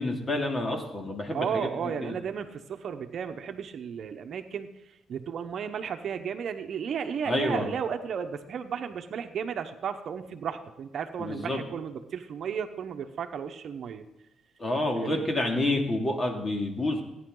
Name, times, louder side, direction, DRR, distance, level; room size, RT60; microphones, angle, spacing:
voice 1, 0.0-2.2 7.3-7.7 11.2-11.6 14.6-17.0, left 1 dB, 30° left, 2 dB, 2.5 m, -29 dB
voice 2, 1.3-4.8 5.1-14.1 15.0-15.3, right 7 dB, 60° right, 7 dB, 1.0 m, -34 dB
17.0 x 10.0 x 3.9 m, 0.89 s
cardioid pair, 90°, 0 cm